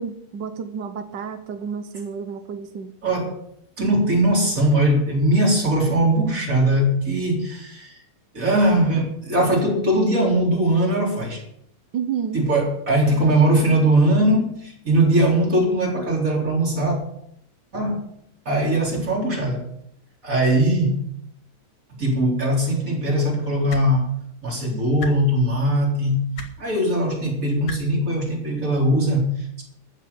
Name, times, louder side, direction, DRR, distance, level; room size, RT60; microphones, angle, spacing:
voice 1, 0.0-2.9 11.9-12.4, right 7 dB, 75° right, 9 dB, 1.0 m, -30 dB
voice 2, 3.0-3.4 3.8-8.0 8.3-11.4 12.3-17.0 17.7-18.0 18.5-19.6 20.2-21.0 21.9-24.1 24.4-26.3 26.6-29.6, right 1 dB, 25° right, 0 dB, 4.0 m, -20 dB
sound 1, 23.7-23.9 25.0-25.1 26.4-26.5 27.7-27.8 29.0-29.1, left 5 dB, 85° left, 3.3 m, -33 dB
14.0 x 7.5 x 8.5 m, 0.71 s
omnidirectional pair, 3.5 m